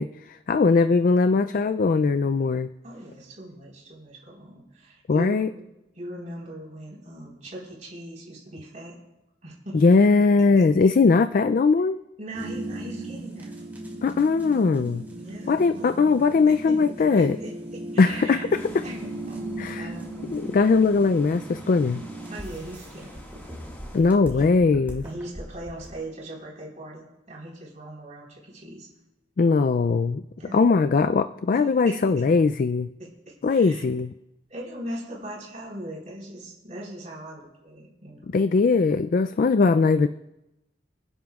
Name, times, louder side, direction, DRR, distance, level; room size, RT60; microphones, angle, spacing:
voice 1, 0.0-2.7 5.1-5.5 9.7-12.0 14.0-15.1 15.5-17.4 18.0-18.8 19.6-19.9 20.3-22.0 23.9-25.0 29.4-30.2 30.5-32.9 33.4-34.1 38.3-40.1, left 4 dB, 45° left, 11 dB, 0.3 m, -20 dB
voice 2, 2.8-5.6 6.0-9.0 9.4-9.8 10.6-10.7 12.2-13.5 15.2-15.9 16.5-16.8 17.1-18.5 18.8-20.6 22.3-23.2 24.3-24.5 25.0-28.9 30.4-30.6 31.5-32.0 33.0-33.8 34.5-38.3, right 1 dB, 40° right, -4 dB, 4.2 m, -40 dB
sound 1, 12.3-26.0, right 2 dB, 10° right, 2.7 m, -38 dB
sound 2, 18.6-24.0, equal, 10° left, 1.8 m, -47 dB
27.0 x 10.0 x 2.4 m, 0.93 s
head